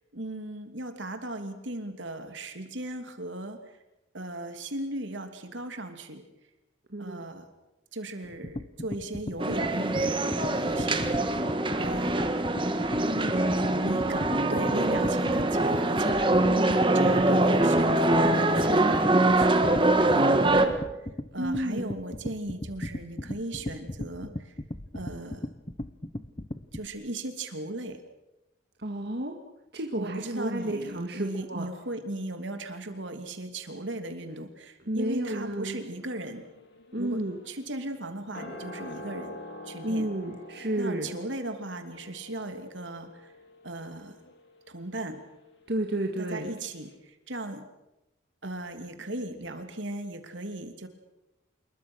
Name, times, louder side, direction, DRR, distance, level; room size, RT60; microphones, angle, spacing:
voice 1, 0.1-3.8 4.1-6.2 7.0-7.5 7.9-11.4 11.7-12.2 13.8-16.4 16.9-21.1 21.3-24.5 24.9-25.5 26.7-28.0 30.0-36.4 37.0-39.4 39.6-40.1 40.8-43.3 43.6-44.2 44.7-45.2 46.2-47.6 48.4-50.9, right 1 dB, 75° right, 6 dB, 2.9 m, -37 dB
voice 2, 6.9-7.2 13.0-14.0 14.7-15.1 16.5-16.9 21.4-21.8 28.8-29.3 29.7-31.7 34.9-35.8 36.9-37.4 39.8-41.1 45.7-46.5, right 1 dB, 55° right, 2 dB, 2.0 m, -32 dB
sound 1, 8.2-26.9, left 1 dB, 30° left, 1.0 m, -37 dB
sound 2, 9.4-20.7, right 2 dB, 25° right, 1.7 m, -24 dB
sound 3, 35.9-46.3 46.6-46.7, left 1 dB, 65° left, 4.8 m, -47 dB
27.0 x 22.0 x 6.4 m, 0.95 s
head